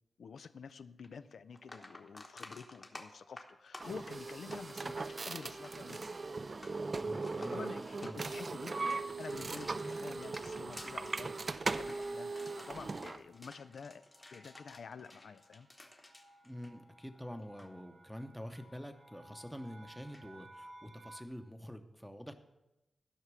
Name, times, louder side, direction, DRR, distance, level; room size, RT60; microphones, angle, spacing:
voice 1, 0.2-6.0 7.4-8.9 9.2-14.0 14.3-15.7, left 5 dB, 90° left, 12 dB, 0.4 m, -49 dB
sound 1, 1.0-1.1 1.5-17.2 17.4-17.7 20.1-20.3, left 2 dB, 20° left, 1.0 m, -54 dB
sound 2, 3.1-3.6 4.3-4.7 5.0-5.2 5.4-21.2, right 1 dB, 55° right, 1.3 m, -61 dB
sound 3, 3.8-13.2, right 3 dB, 40° right, 0.3 m, -39 dB
voice 2, 7.0-7.6 8.0-8.2 16.4-22.3, equal, ahead, 7 dB, 0.8 m, -46 dB
13.0 x 5.8 x 6.1 m, 0.95 s
wide cardioid pair, 135°, 0 cm